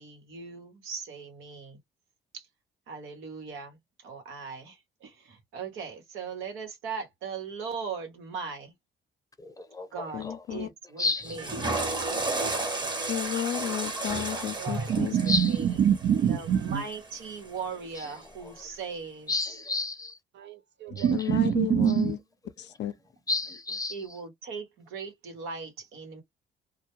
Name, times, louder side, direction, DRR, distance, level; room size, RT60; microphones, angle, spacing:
voice 1, 0.0-1.8 2.3-2.5 2.9-3.8 4.0-8.7 9.9-11.5 14.3-15.7 16.3-19.6 23.9-26.2, right 5 dB, 90° right, 1.1 m, -39 dB
voice 2, 10.1-10.7 13.1-15.2 21.1-22.2 22.6-22.9, left 11 dB, 60° left, 0.5 m, -32 dB
voice 3, 11.0-11.4 15.3-15.5 19.3-20.1 23.3-24.0, left 3 dB, 15° left, 0.7 m, -30 dB
Water / Toilet flush, 11.2-17.5, right 2 dB, 20° right, 0.8 m, -33 dB
voice 4, 14.9-16.8 20.4-22.2, right 9 dB, 65° right, 0.6 m, -25 dB
2.2 x 2.2 x 2.9 m
cardioid pair, 90°, 20 cm